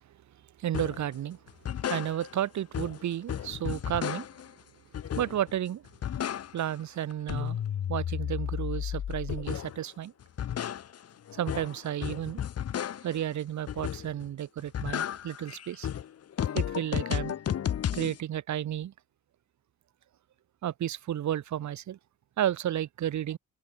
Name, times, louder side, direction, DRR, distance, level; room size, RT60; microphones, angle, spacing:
voice 1, 0.6-1.4 1.9-4.3 5.1-5.8 6.5-7.6 7.9-10.1 11.3-12.4 13.0-15.9 16.5-17.3 17.9-18.9 20.6-22.0 22.4-23.4, right 11 dB, 70° right, 3.0 m, -32 dB
sound 1, 0.7-1.1 1.5-2.5 2.7-4.5 4.9-5.6 5.9-6.8 7.1-9.8 10.2-13.2 13.7-14.3 14.6-18.2, left 9 dB, 55° left, 1.5 m, -33 dB
cardioid pair, 90°, 30 cm